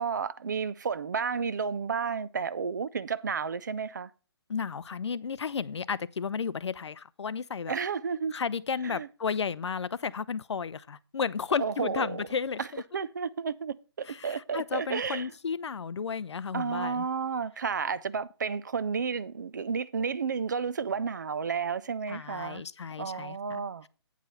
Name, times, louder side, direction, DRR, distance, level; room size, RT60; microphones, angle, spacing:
voice 1, 0.0-4.1 7.7-8.4 8.8-9.1 11.6-12.2 12.6-12.7 12.9-15.3 16.5-22.6 23.0-23.9, right 6 dB, 45° right, 0.5 m, -32 dB
voice 2, 4.5-7.7 8.3-12.8 14.1-17.1 22.1-23.6, left 6 dB, 85° left, 0.6 m, -33 dB
9.2 x 4.9 x 5.6 m
hypercardioid pair, 170°, 14 cm